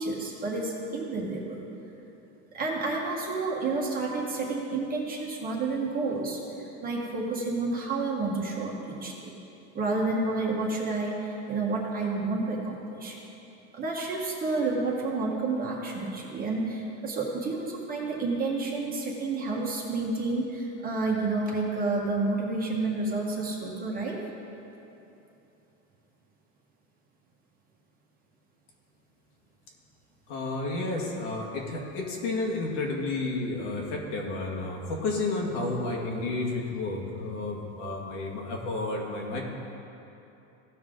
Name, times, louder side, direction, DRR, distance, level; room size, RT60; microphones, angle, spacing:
voice 1, 0.0-1.6 2.5-9.3 9.7-13.2 13.7-24.2, right 3 dB, 25° right, -2 dB, 1.6 m, -30 dB
voice 2, 30.3-39.4, left 2 dB, 70° left, -1 dB, 2.2 m, -31 dB
16.5 x 5.8 x 3.9 m, 2.9 s
supercardioid pair, 140°, 36 cm